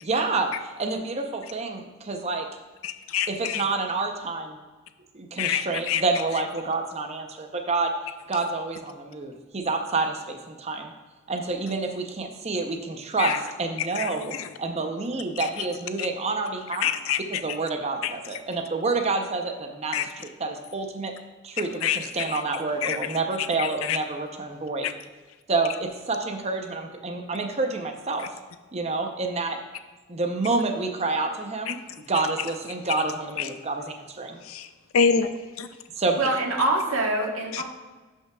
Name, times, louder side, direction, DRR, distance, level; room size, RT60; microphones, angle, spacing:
voice 1, 0.0-2.5 3.3-4.6 5.1-7.9 8.3-10.9 11.3-16.9 17.3-21.1 21.4-24.8 25.5-28.3 28.7-29.6 30.1-34.4 36.0-36.2, right 3 dB, 30° right, 4 dB, 0.7 m, -28 dB
voice 2, 2.8-3.6 5.4-6.0 13.2-13.4 14.0-14.5 16.0-16.1 16.8-17.2 18.0-18.1 19.9-20.0 21.8-22.0 22.3-22.4 22.8-23.0 23.6-24.0 24.8-24.9 31.7-31.8 33.4-33.5 34.5-34.7 34.9-35.3 35.6-35.7 37.5-37.6, left 7 dB, 80° left, 11 dB, 0.5 m, -26 dB
voice 3, 36.2-37.6, right 2 dB, 90° right, 0 dB, 1.3 m, -24 dB
12.0 x 5.5 x 2.3 m, 1.3 s
head